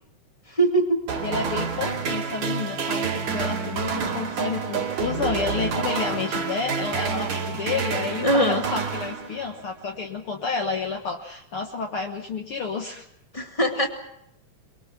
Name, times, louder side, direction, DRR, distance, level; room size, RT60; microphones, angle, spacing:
voice 1, 0.5-1.1 8.2-8.6 13.3-13.9, right 1 dB, 15° left, 4 dB, 1.8 m, -21 dB
sound 1, 1.1-9.7, right 6 dB, 65° right, 3.5 m, -28 dB
voice 2, 1.2-13.1 13.8-13.9, left 5 dB, 50° left, 3 dB, 2.0 m, -30 dB
23.5 x 22.5 x 6.0 m, 0.76 s
omnidirectional pair, 3.5 m